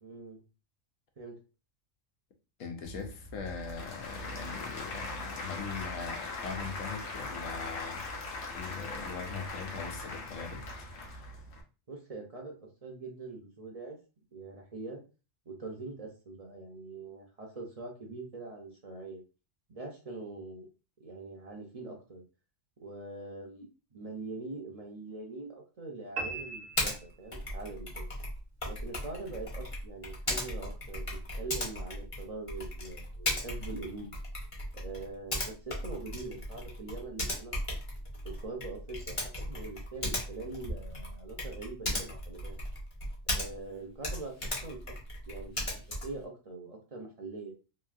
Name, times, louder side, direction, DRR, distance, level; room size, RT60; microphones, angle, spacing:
voice 1, 0.0-0.4 1.2-1.4 11.9-14.0 14.3-15.0 15.5-19.2 19.7-20.7 21.0-22.2 22.8-28.1 28.6-34.1 34.7-37.5 38.2-42.6 43.3-44.9 45.3-47.5, right 3 dB, 40° right, 0.6 m, -43 dB
voice 2, 2.6-8.3 8.5-10.7, left 5 dB, 85° left, 1.1 m, -41 dB
Applause / Crowd, 2.8-11.6, left 2 dB, 60° left, 0.9 m, -40 dB
sound 1, 26.2-27.7, right 4 dB, 85° right, 1.0 m, -39 dB
Typing, 26.8-27.0 27.3-43.7 44.0-46.2, left 1 dB, 30° left, 0.7 m, -37 dB
3.1 x 2.6 x 2.4 m
omnidirectional pair, 1.3 m